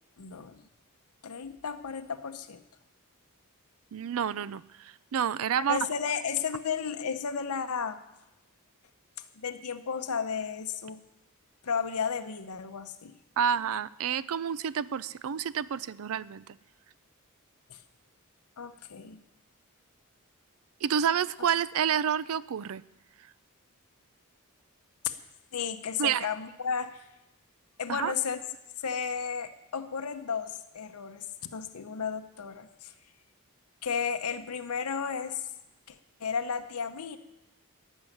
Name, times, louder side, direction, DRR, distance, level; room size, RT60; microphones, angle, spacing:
voice 1, 0.2-0.6 1.2-2.6 5.6-8.0 9.4-11.0 11.6-13.1 17.7-17.8 18.6-19.2 25.0-25.2 25.5-27.0 27.8-28.4 28.8-31.3 31.5-32.9 33.8-35.4 35.9-37.2, left 6 dB, 85° left, 8 dB, 0.7 m, -33 dB
voice 2, 3.9-5.8 13.4-16.4 20.8-22.8 26.0-26.3 27.9-28.1, right 8 dB, 65° right, 18 dB, 0.4 m, -29 dB
14.0 x 6.3 x 9.8 m, 0.93 s
head